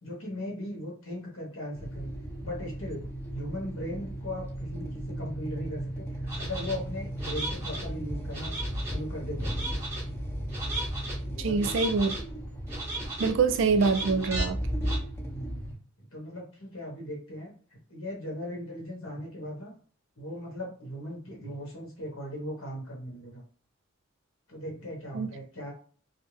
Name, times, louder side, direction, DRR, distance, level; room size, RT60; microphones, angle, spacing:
voice 1, 0.0-2.1 2.4-3.0 3.3-8.5 8.8-9.6 11.3-12.0 15.3-15.7 16.1-17.5 17.9-19.7 20.2-23.4 24.5-25.7, left 1 dB, 85° left, 1.2 m, -38 dB
sound 1, 1.7-15.7, equal, 10° left, 0.5 m, -35 dB
sound 2, 6.3-6.7 7.2-7.9 8.3-9.0 9.4-10.0 10.5-11.2 11.6-12.2 12.7-13.3 13.8-14.5 14.8-15.0, right 2 dB, 15° right, 0.9 m, -36 dB
voice 2, 11.4-12.1 13.2-14.6 25.1-25.3, right 4 dB, 65° right, 0.3 m, -25 dB
2.7 x 2.1 x 3.1 m
head